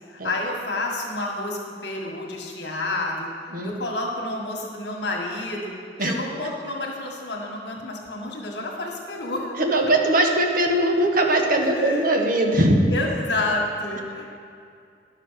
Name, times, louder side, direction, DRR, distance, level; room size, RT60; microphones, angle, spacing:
voice 1, 0.1-3.3 3.6-5.7 6.0-9.5 11.7-12.0 12.9-14.3, left 2 dB, 70° left, 0 dB, 1.7 m, -29 dB
voice 2, 9.6-12.8, right 1 dB, 55° right, 3 dB, 1.1 m, -20 dB
11.0 x 6.7 x 5.8 m, 2.4 s
head